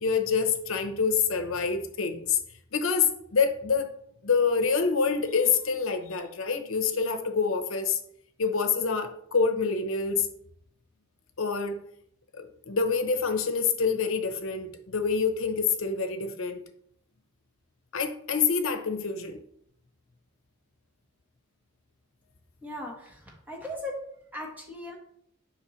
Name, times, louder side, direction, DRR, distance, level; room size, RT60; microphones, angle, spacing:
voice 1, 0.0-2.4 2.7-3.9 4.2-8.0 8.4-10.3 11.4-11.8 12.4-16.6 17.9-19.4, left 5 dB, 70° left, 0.8 m, -26 dB
voice 2, 22.6-24.0 24.3-24.9, left 1 dB, 10° right, 1.2 m, -38 dB
7.1 x 5.2 x 3.1 m
head